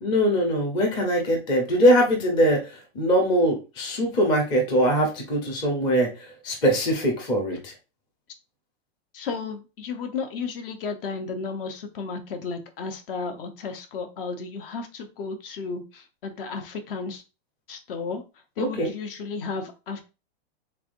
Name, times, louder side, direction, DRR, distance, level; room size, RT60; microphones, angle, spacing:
voice 1, 0.0-6.1 6.4-7.7 18.6-18.9, equal, 15° left, 1 dB, 0.5 m, -22 dB
voice 2, 9.1-17.2 17.7-18.2 18.6-20.0, left 4 dB, 60° left, 7 dB, 0.8 m, -33 dB
3.5 x 3.3 x 2.5 m, 0.30 s
supercardioid pair, 160°, 32 cm